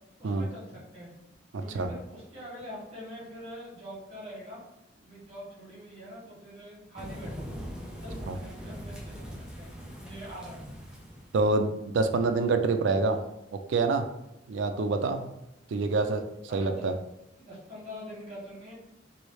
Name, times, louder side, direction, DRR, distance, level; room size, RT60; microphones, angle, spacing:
voice 1, 0.2-1.1 1.6-4.6 5.0-7.5 8.0-9.3 9.5-9.7 10.0-10.6 16.5-16.9 17.3-18.7, equal, 35° right, -6 dB, 1.5 m, -44 dB
voice 2, 1.5-1.9 8.3-8.4 11.3-13.2 13.7-14.1 14.5-15.3 15.7-16.2 16.5-16.9, right 3 dB, 70° right, 7 dB, 0.4 m, -26 dB
sound 1, 7.0-11.4, equal, 5° right, 0.4 m, -41 dB
3.1 x 2.7 x 3.1 m, 0.88 s
head